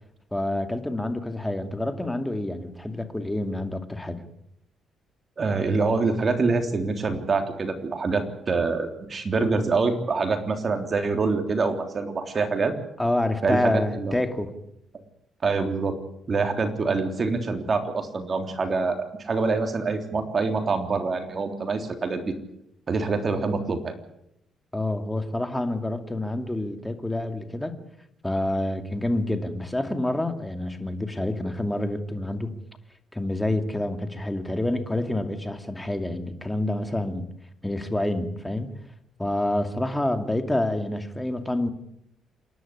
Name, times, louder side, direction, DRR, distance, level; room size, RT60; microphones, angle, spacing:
voice 1, 0.3-4.2 13.0-14.5 24.7-27.8 28.2-32.6 33.1-37.3 37.6-38.7 39.2-41.7, left 1 dB, 10° left, 7 dB, 2.5 m, -27 dB
voice 2, 5.4-12.7 13.4-14.1 15.4-16.0 16.3-22.3 22.9-24.0, right 4 dB, 40° right, 6 dB, 3.5 m, -25 dB
27.5 x 11.5 x 9.9 m, 0.77 s
cardioid pair, 90°, 0 cm